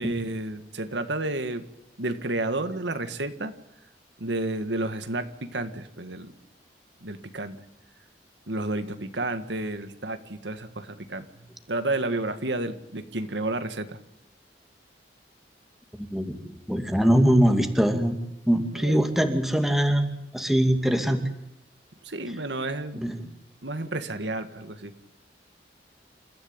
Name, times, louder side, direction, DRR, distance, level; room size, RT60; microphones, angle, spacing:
voice 1, 0.0-1.7 2.0-3.5 4.2-6.3 7.0-7.6 8.5-11.3 11.7-14.0 18.8-19.0 22.0-23.0 23.6-24.9, right 2 dB, 75° right, 9 dB, 1.8 m, -31 dB
voice 2, 16.7-18.2 18.5-20.1 20.3-21.2 23.0-23.3, equal, ahead, 5 dB, 2.4 m, -22 dB
29.0 x 14.5 x 8.8 m, 0.85 s
head